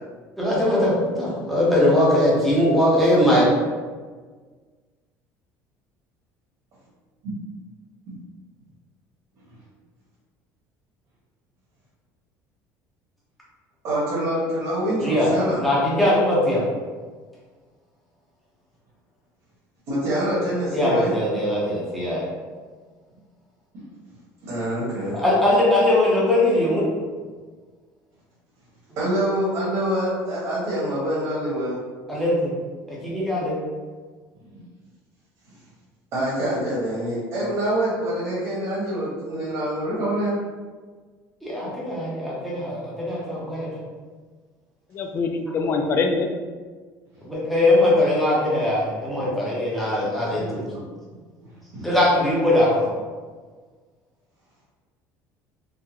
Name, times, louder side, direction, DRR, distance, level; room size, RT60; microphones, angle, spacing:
voice 1, 0.4-3.5 15.0-15.3 15.6-16.6 20.7-22.2 25.1-26.9 32.1-32.5 32.9-33.6 41.4-43.7 47.2-50.6 51.8-52.9, left 1 dB, ahead, -7 dB, 0.7 m, -20 dB
voice 2, 13.8-15.6 19.9-21.1 24.4-25.2 29.0-31.8 36.1-40.4 51.4-51.5 51.7-51.9, right 1 dB, 60° right, -8 dB, 1.3 m, -25 dB
voice 3, 44.9-46.3, left 4 dB, 30° left, 4 dB, 0.3 m, -24 dB
3.6 x 2.1 x 2.9 m, 1.5 s
cardioid pair, 155°, 7 cm